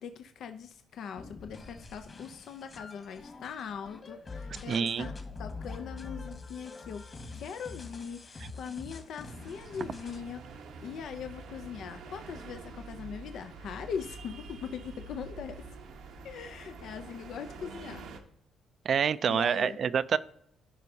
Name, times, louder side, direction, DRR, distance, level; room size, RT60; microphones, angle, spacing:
voice 1, 0.0-5.1 5.4-7.0 7.3-15.6 16.2-18.1 19.3-19.8, left 7 dB, 70° left, 8 dB, 0.5 m, -41 dB
sound 1, 1.2-10.2, left 3 dB, 40° left, 1.6 m, -45 dB
voice 2, 4.7-5.1 18.8-20.2, right 7 dB, 55° right, 16 dB, 0.4 m, -27 dB
sound 2, 9.3-18.2, right 4 dB, 85° right, 1.0 m, -46 dB
14.0 x 5.3 x 2.8 m, 0.71 s
cardioid pair, 90°, 0 cm